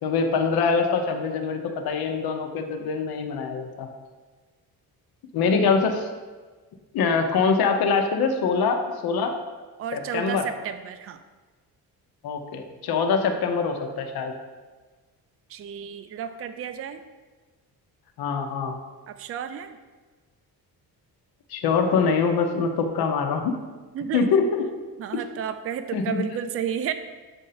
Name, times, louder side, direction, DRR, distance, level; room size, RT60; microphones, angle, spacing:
voice 1, 0.0-3.9 5.3-6.1 6.9-9.3 9.9-10.5 12.2-14.3 18.2-18.7 21.5-23.6 24.1-24.6 25.9-26.2, left 5 dB, 70° left, 4 dB, 0.8 m, -24 dB
voice 2, 9.8-11.2 15.5-17.0 19.1-19.8 23.9-24.4 25.0-26.9, right 8 dB, 40° right, 10 dB, 0.4 m, -32 dB
7.5 x 2.7 x 5.7 m, 1.3 s
cardioid pair, 105°, 39 cm